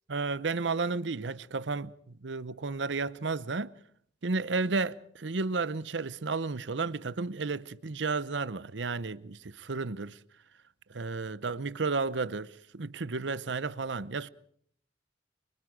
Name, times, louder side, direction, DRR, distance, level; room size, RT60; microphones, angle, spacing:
voice 1, 0.1-1.9 2.2-3.7 4.2-10.2 10.9-14.3, right 4 dB, 85° right, 0.8 m, -32 dB
26.5 x 24.5 x 5.0 m
head